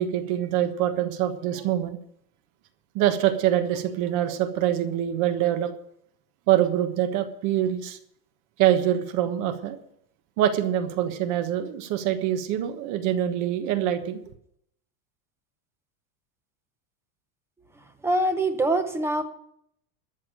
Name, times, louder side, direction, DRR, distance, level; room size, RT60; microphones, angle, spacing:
voice 1, 0.0-2.0 2.9-5.7 6.5-8.0 8.6-9.8 10.4-14.2, right 11 dB, 40° right, 10 dB, 1.3 m, -24 dB
voice 2, 18.0-19.2, right 1 dB, 5° right, 8 dB, 0.7 m, -24 dB
13.5 x 7.0 x 8.8 m, 0.69 s
cardioid pair, 180°, 45 cm